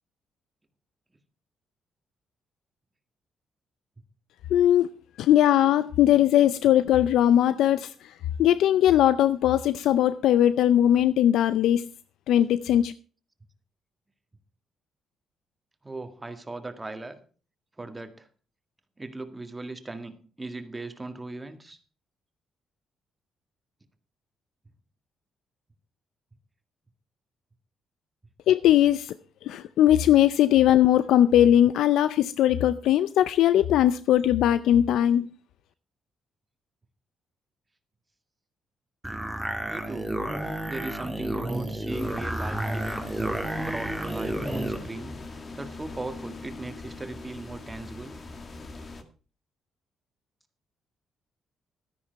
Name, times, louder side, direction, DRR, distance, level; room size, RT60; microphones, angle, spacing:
voice 1, 4.5-4.9 5.2-8.1 8.4-11.9 12.3-12.9 28.5-29.1 29.4-35.3, left 11 dB, 85° left, 0.5 m, -20 dB
voice 2, 15.8-17.2 17.8-18.3 19.0-21.8 39.7-40.1 40.4-43.3 43.6-48.1, right 2 dB, 15° right, 1.9 m, -38 dB
sound 1, 39.0-44.8, right 1 dB, ahead, 2.1 m, -31 dB
sound 2, 41.9-49.0, left 3 dB, 40° left, 1.9 m, -42 dB
13.0 x 10.0 x 4.6 m
cardioid pair, 90°, 0 cm